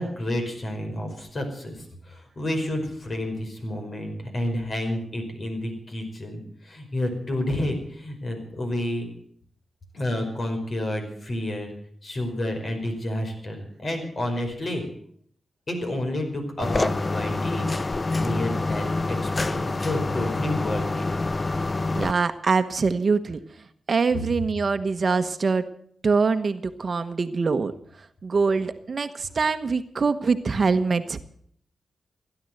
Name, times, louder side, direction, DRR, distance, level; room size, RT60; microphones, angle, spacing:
voice 1, 0.0-9.1 9.9-11.7 12.0-14.8 15.7-17.7 18.2-21.1, left 1 dB, 50° left, 4 dB, 5.1 m, -30 dB
sound 1, 16.6-22.1, left 2 dB, 30° left, 0.6 m, -26 dB
voice 2, 21.9-23.4 23.9-25.6 26.0-27.7 28.2-31.2, right 4 dB, 50° right, 10 dB, 1.2 m, -24 dB
16.5 x 11.0 x 7.9 m, 0.63 s
cardioid pair, 85°, 0 cm